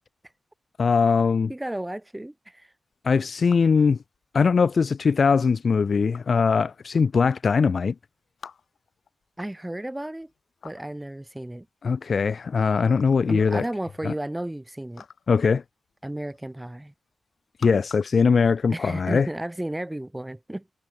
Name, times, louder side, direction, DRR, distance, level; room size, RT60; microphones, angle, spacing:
voice 1, 0.8-1.5 3.0-4.0 4.3-7.9 11.8-13.6 14.0-14.1 15.3-15.6 17.6-19.3, left 5 dB, 50° left, 0.4 m, -21 dB
voice 2, 1.5-2.7 9.4-10.3 10.6-11.7 13.3-15.0 16.0-16.9 18.7-20.7, right 1 dB, 10° right, 7.7 m, -33 dB
sound 1, 2.9-19.3, left 6 dB, 65° left, 7.1 m, -51 dB
wide cardioid pair, 135°, 0 cm